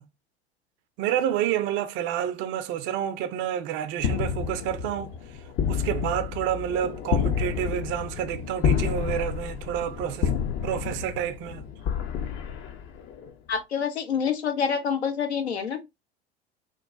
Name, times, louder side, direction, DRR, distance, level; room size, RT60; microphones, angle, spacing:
voice 1, 1.0-5.1 5.7-10.3 10.6-11.6, right 10 dB, 40° right, 0.4 m, -29 dB
sound 1, 4.0-13.3, left 7 dB, 35° left, 0.4 m, -29 dB
voice 2, 13.5-15.8, left 6 dB, 85° left, 0.5 m, -27 dB
2.9 x 2.1 x 2.4 m
figure-of-eight pair, 75°, 32 cm